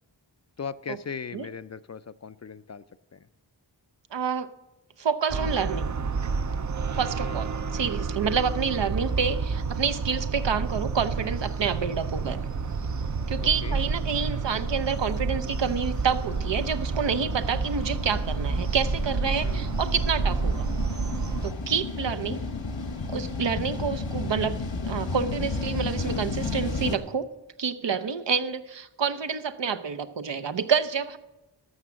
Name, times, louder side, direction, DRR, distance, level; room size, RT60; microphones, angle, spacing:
voice 1, 0.6-2.8 3.1-3.3 7.2-7.4 13.4-13.8 19.4-19.7, left 6 dB, 40° left, 15 dB, 0.4 m, -38 dB
voice 2, 4.1-4.5 5.0-5.9 7.0-12.4 13.3-20.7 21.4-22.4 23.1-24.6 24.8-27.3 27.6-31.2, right 6 dB, 75° right, 11 dB, 0.7 m, -28 dB
sound 1, 5.3-21.5, right 4 dB, 40° right, 0.5 m, -29 dB
sound 2, 9.5-27.0, left 3 dB, 80° left, 1.2 m, -35 dB
13.0 x 6.0 x 7.3 m, 1.0 s
wide cardioid pair, 40°, 44 cm